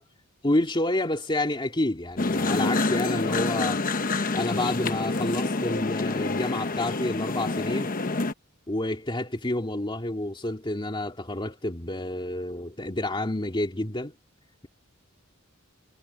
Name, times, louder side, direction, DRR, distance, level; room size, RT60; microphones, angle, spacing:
voice 1, 0.4-3.8 4.3-7.9 8.7-14.1, left 1 dB, 25° left, 2.1 m, -29 dB
sound 1, 2.2-8.3, left 3 dB, 40° left, 1.0 m, -27 dB
head